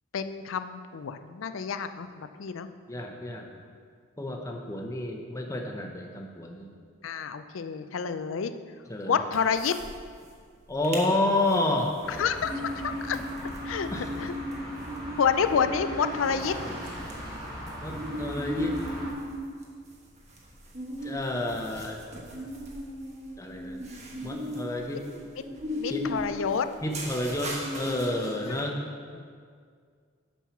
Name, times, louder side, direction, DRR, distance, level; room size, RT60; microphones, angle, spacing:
voice 1, 0.1-2.7 7.0-8.5 9.0-9.8 12.1-12.5 12.8-13.2 13.6-14.3 15.2-16.5 25.7-26.7 28.5-28.7 29.1-29.4, left 6 dB, 80° left, 10 dB, 0.4 m, -29 dB
voice 2, 2.9-3.5 4.2-6.7 8.9-9.2 10.7-11.9 13.9-14.1 17.8-18.8 21.0-22.0 23.4-23.8 24.2-25.0 25.9-26.1 26.8-28.8, left 2 dB, 15° left, 2 dB, 0.8 m, -30 dB
sound 1, 9.3-9.9 10.2-10.3 10.7-11.1 11.5-28.6, equal, 35° right, 1.2 m, -37 dB
sound 2, 12.0-19.1, equal, 20° right, 1.9 m, -39 dB
7.3 x 5.5 x 5.8 m, 2.1 s
head